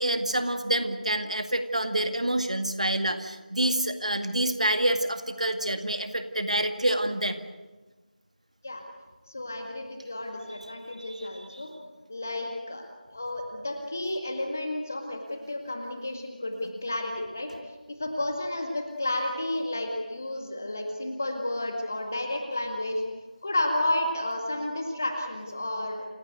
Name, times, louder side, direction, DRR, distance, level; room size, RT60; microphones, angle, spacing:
voice 1, 0.0-7.4 11.0-11.7, right 1 dB, 50° right, 8 dB, 2.0 m, -27 dB
voice 2, 9.3-11.7 12.1-12.9 13.1-15.2 15.5-17.5 18.0-23.0 23.4-26.1, left 1 dB, 20° left, 3 dB, 1.9 m, -31 dB
28.5 x 17.5 x 8.1 m, 1.2 s
figure-of-eight pair, 175°, 5 cm